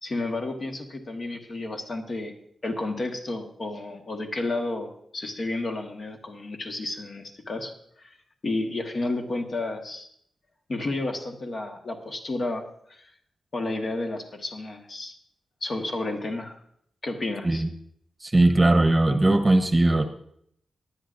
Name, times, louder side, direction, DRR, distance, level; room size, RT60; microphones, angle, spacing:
voice 1, 0.0-2.3 2.6-8.2 8.4-10.1 10.7-13.1 13.5-15.2 15.6-16.6 17.0-17.6, left 2 dB, 50° left, 3 dB, 1.5 m, -31 dB
voice 2, 18.2-20.0, right 2 dB, 20° right, 6 dB, 1.0 m, -19 dB
18.5 x 10.0 x 2.6 m, 0.69 s
wide cardioid pair, 90°, 0 cm